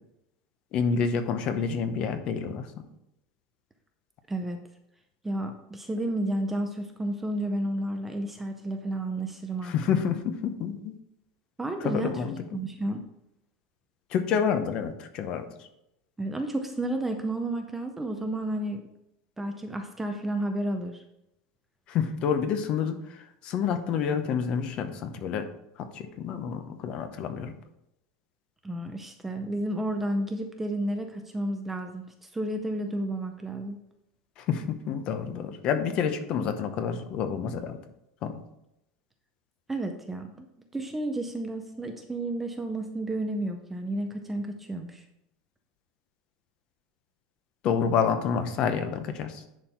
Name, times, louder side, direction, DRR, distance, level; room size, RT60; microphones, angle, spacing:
voice 1, 0.7-2.7 9.6-10.9 11.8-12.3 14.1-15.5 21.9-23.0 23.4-25.5 25.8-27.5 34.4-37.8 38.2-38.4 47.6-49.4, left 7 dB, 35° left, 9 dB, 0.8 m, -28 dB
voice 2, 4.3-4.6 5.2-9.7 11.6-12.2 12.5-13.0 16.2-18.9 19.4-21.0 28.6-32.0 32.3-33.8 39.7-40.5 40.7-45.0, right 1 dB, 5° right, 5 dB, 0.5 m, -31 dB
10.5 x 4.4 x 4.5 m, 0.84 s
supercardioid pair, 175°, 3 cm